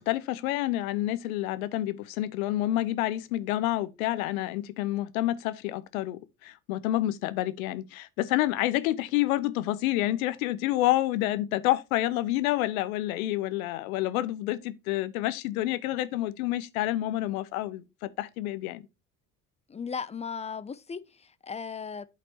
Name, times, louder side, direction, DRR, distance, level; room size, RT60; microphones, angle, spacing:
voice 1, 0.0-18.8, left 15 dB, 75° left, 0.7 m, -28 dB
voice 2, 19.7-22.1, left 6 dB, 15° left, 0.4 m, -36 dB
11.5 x 4.2 x 2.7 m
hypercardioid pair, 55°, 42 cm